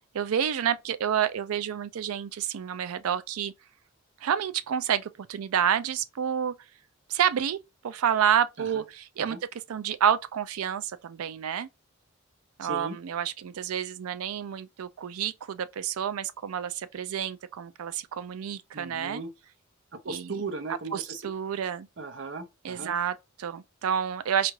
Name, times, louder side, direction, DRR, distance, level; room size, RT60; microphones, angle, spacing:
voice 1, 0.1-3.5 4.2-6.5 7.1-7.6 7.8-9.4 9.7-11.7 12.6-19.2 20.1-20.4 20.9-21.9 22.6-24.5, right 8 dB, 85° right, 0.4 m, -29 dB
voice 2, 12.6-13.0 18.7-19.3 19.9-21.2 22.0-22.9, right 3 dB, 60° right, 0.7 m, -37 dB
4.4 x 2.5 x 3.1 m
head